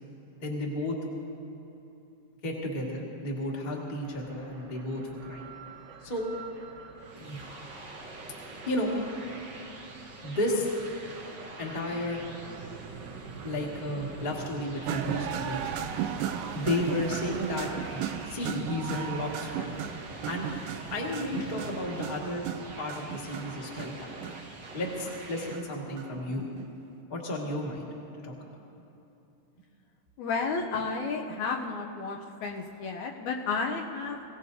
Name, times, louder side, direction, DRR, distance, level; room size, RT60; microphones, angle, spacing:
voice 1, 0.4-0.9 2.4-5.5 6.0-6.3 7.1-7.4 8.6-8.9 10.2-10.7 11.6-12.2 13.4-15.9 16.5-19.7 20.3-20.5 20.9-22.5 22.8-24.1 24.7-26.5 27.1-27.9 28.2-28.6, left 1 dB, 20° left, -3 dB, 1.3 m, -33 dB
sound 1, 4.0-16.4, right 5 dB, 65° right, 1.6 m, -46 dB
sound 2, 7.0-25.6, right 2 dB, 50° right, 1.3 m, -46 dB
sound 3, 14.9-26.7, right 9 dB, 85° right, 2.2 m, -36 dB
voice 2, 30.2-34.3, left 4 dB, 75° left, 1 dB, 2.0 m, -32 dB
22.5 x 16.5 x 2.7 m, 2.9 s
omnidirectional pair, 3.7 m